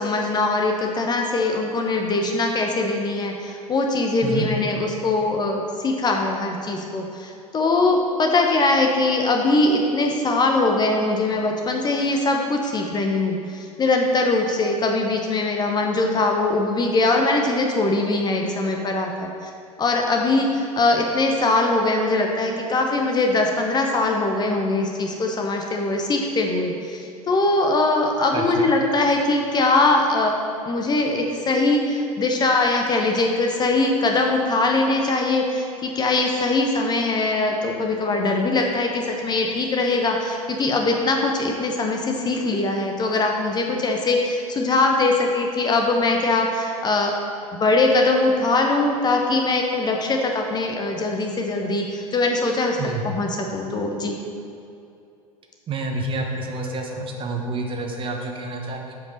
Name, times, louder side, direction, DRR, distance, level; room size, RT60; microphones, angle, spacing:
voice 1, 0.0-19.1 19.4-19.5 19.8-27.0 27.3-30.3 30.7-47.1 47.6-52.8 53.0-54.1, left 2 dB, 20° left, 2 dB, 0.9 m, -21 dB
voice 2, 28.3-28.7 52.8-53.0 55.7-58.9, right 3 dB, 30° right, 2 dB, 1.2 m, -28 dB
8.1 x 5.3 x 6.4 m, 2.7 s
figure-of-eight pair, 80°, 19 cm